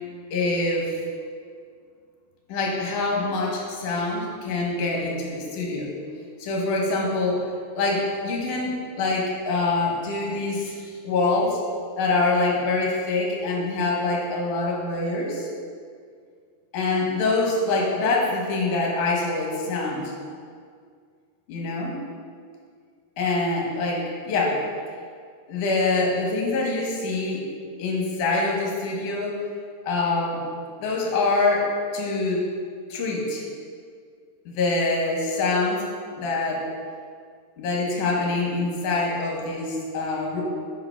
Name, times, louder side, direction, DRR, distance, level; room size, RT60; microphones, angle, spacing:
voice 1, 0.3-1.0 2.5-5.9 6.4-11.6 12.0-15.5 16.7-20.1 21.5-21.9 23.2-24.6 25.5-27.4 27.8-29.4 29.8-30.4 30.8-32.4 32.9-33.4 34.5-35.9 36.2-36.7 37.6-40.4, left 3 dB, 65° left, -2 dB, 2.3 m, -25 dB
6.7 x 5.1 x 5.9 m, 2.1 s
omnidirectional pair, 4.9 m